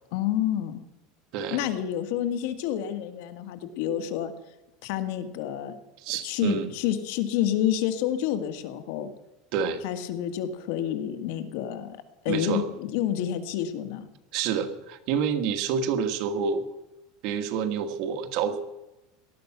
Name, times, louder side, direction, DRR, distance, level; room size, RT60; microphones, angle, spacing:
voice 1, 0.1-0.8 1.5-4.3 4.8-5.7 6.2-9.1 9.8-12.0 12.2-14.1, left 11 dB, 70° left, 8 dB, 1.8 m, -29 dB
voice 2, 1.3-1.6 6.0-6.7 9.5-9.8 12.3-12.7 14.3-16.7 17.2-18.6, right 7 dB, 55° right, 8 dB, 1.7 m, -28 dB
18.5 x 12.5 x 6.1 m, 0.95 s
supercardioid pair, 145°, 0 cm